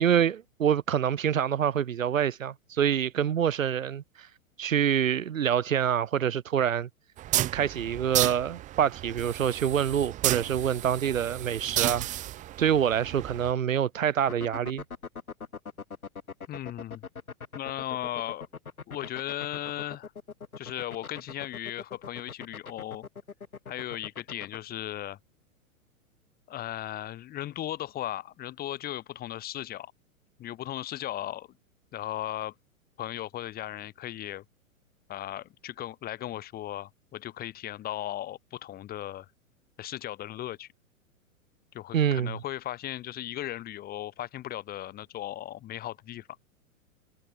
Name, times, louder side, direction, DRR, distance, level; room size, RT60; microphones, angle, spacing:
voice 1, 0.0-4.3 4.6-6.9 7.5-12.1 12.6-14.8 41.9-42.4, right 9 dB, 65° right, 1.3 m, -26 dB
sound 1, 7.2-13.5, right 14 dB, 20° right, 0.8 m, -32 dB
sound 2, 14.2-24.6, left 5 dB, 80° left, 1.8 m, -41 dB
voice 2, 16.5-17.1 17.5-18.5 18.9-20.1 20.6-23.0 23.7-25.2 26.5-29.9 30.4-31.5 31.9-32.5 33.0-34.4 35.1-39.3 39.8-40.7 41.7-46.3, left 13 dB, 20° left, 1.4 m, -36 dB
figure-of-eight pair, 105°, 42 cm